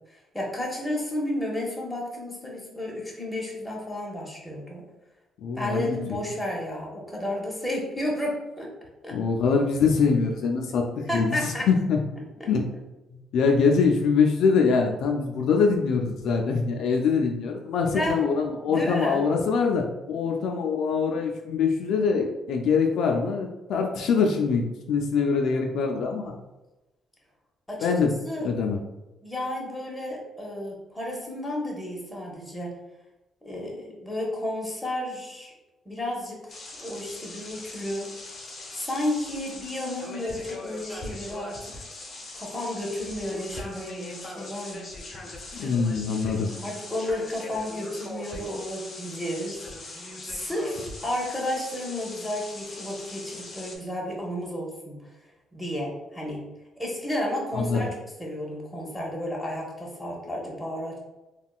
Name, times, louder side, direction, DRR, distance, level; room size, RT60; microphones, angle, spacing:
voice 1, 0.1-4.8 5.6-8.7 9.0-9.2 11.1-11.7 12.4-12.5 17.9-18.2 18.6-19.2 27.7-27.9 28.2-28.5 29.2-32.7 33.4-35.5 35.8-36.5 36.8-38.1 38.7-41.6 42.3-44.8 45.5-45.7 46.5-55.0 55.5-56.5 56.8-57.9 58.2-61.0, left 1 dB, 10° left, -2 dB, 1.0 m, -32 dB
voice 2, 5.4-6.0 9.1-12.0 12.5-12.7 13.3-26.3 27.8-28.1 28.4-28.8 45.6-46.5 57.5-57.8, left 5 dB, 75° left, 2 dB, 0.3 m, -24 dB
sound 1, 36.5-53.8, left 2 dB, 50° left, 0.7 m, -40 dB
3.5 x 2.3 x 2.4 m, 1.0 s
cardioid pair, 90°, 0 cm